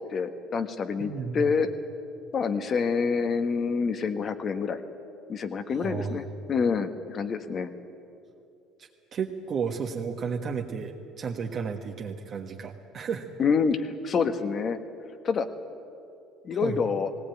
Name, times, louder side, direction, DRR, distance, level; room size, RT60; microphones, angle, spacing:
voice 1, 0.1-1.7 2.3-4.8 5.3-7.7 13.4-14.8 15.2-15.5 16.4-17.1, left 5 dB, 40° left, 9 dB, 1.4 m, -27 dB
voice 2, 1.0-1.5 5.8-6.2 8.8-13.3 16.6-16.8, right 6 dB, 45° right, 0 dB, 1.4 m, -33 dB
18.5 x 18.5 x 9.2 m, 2.7 s
supercardioid pair, 100°, 0 cm